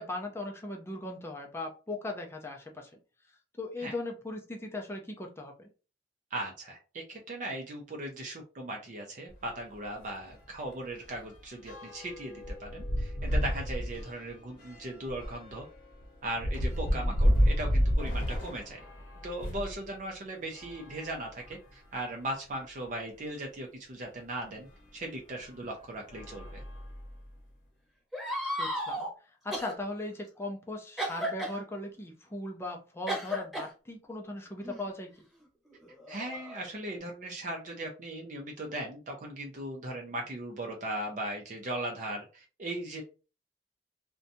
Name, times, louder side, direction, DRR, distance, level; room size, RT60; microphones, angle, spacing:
voice 1, 0.0-2.9 3.6-5.7 16.9-17.2 28.6-35.2, left 2 dB, 15° left, 2 dB, 0.4 m, -39 dB
voice 2, 6.3-15.7 16.2-18.8 19.2-24.7 24.9-26.6 36.1-43.0, right 1 dB, 45° right, 1 dB, 0.5 m, -38 dB
sound 1, 9.3-9.5 9.8-9.9 10.3-19.8 20.5-21.8 22.5-22.6 22.9-23.0 24.6-24.8 25.4-25.6 26.1-27.3, equal, 55° left, 0.8 m, -31 dB
sound 2, 28.1-29.1 29.5-29.7 31.0-31.6 33.1-33.7 34.6-34.8 35.7-37.0, equal, 5° right, 0.9 m, -34 dB
2.6 x 2.2 x 2.6 m, 0.33 s
head